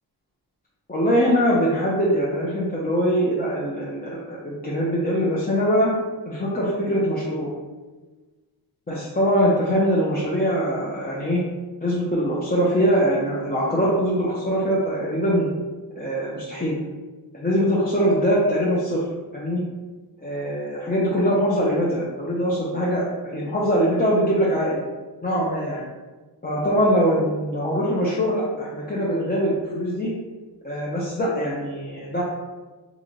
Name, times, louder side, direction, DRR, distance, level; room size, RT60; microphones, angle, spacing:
voice 1, 0.9-5.9 6.3-7.5 8.9-11.4 11.8-15.5 15.9-16.8 17.3-19.0 19.3-19.6 20.2-24.8 25.2-25.8 26.4-30.1 30.6-32.2, equal, 20° left, -7 dB, 0.6 m, -22 dB
3.9 x 2.5 x 3.1 m, 1.3 s
wide cardioid pair, 95°, 42 cm